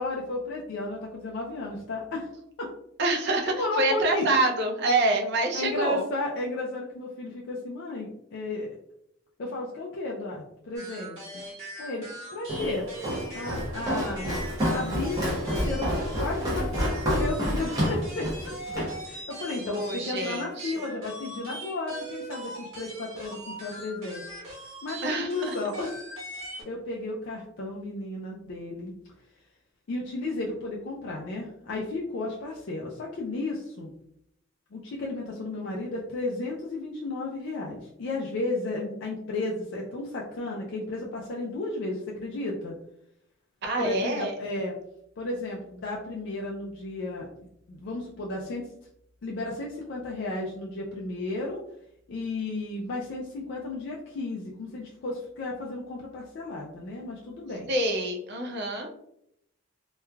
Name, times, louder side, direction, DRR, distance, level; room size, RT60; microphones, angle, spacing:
voice 1, 0.0-2.3 2.6-2.7 3.4-4.2 5.5-8.8 9.4-11.3 11.8-12.1 12.3-12.9 13.3-14.2 14.6-26.0 26.3-28.9 29.9-33.9 34.7-42.7 43.8-44.7 45.2-47.3 47.7-48.7 49.2-51.6 52.1-57.7, left 2 dB, 60° left, -2 dB, 0.4 m, -33 dB
voice 2, 3.0-6.0 19.7-20.7 25.0-25.5 43.6-44.4 57.7-58.9, right 2 dB, 55° right, 2 dB, 0.5 m, -26 dB
sound 1, 10.8-26.6, right 1 dB, 75° right, 1.1 m, -41 dB
Walk footsteps, 12.5-19.0, equal, 15° right, 0.8 m, -28 dB
3.0 x 2.3 x 2.2 m, 0.77 s
head